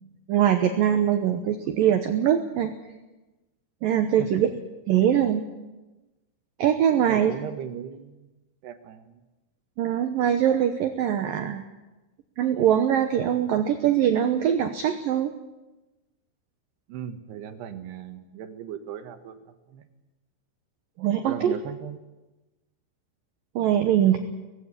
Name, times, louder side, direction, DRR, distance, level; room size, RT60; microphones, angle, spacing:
voice 1, 0.3-2.7 3.8-4.5 4.9-5.4 6.6-7.3 9.8-11.6 12.4-15.3 21.0-21.5 23.6-24.2, right 10 dB, 85° right, 7 dB, 2.0 m, -22 dB
voice 2, 7.1-8.3 8.6-9.2 16.9-19.4 19.7-19.8 21.2-22.0, right 9 dB, 70° right, 8 dB, 2.9 m, -37 dB
19.5 x 16.0 x 9.7 m, 1.1 s
omnidirectional pair, 5.6 m